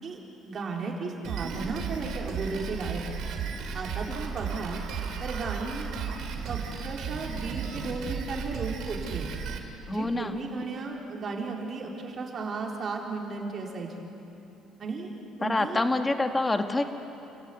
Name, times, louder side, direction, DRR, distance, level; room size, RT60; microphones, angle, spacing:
voice 1, 0.0-3.0 3.7-4.8 5.2-5.9 6.5-9.3 9.8-13.9 14.8-15.1 15.4-15.8, right 4 dB, 40° right, -1 dB, 4.2 m, -35 dB
Drum kit, 1.2-9.6, right 6 dB, 65° right, 2.9 m, -34 dB
voice 2, 9.9-10.4 15.4-16.8, left 2 dB, 15° left, 6 dB, 1.6 m, -26 dB
29.0 x 15.5 x 9.5 m, 2.9 s
cardioid pair, 110°, 0 cm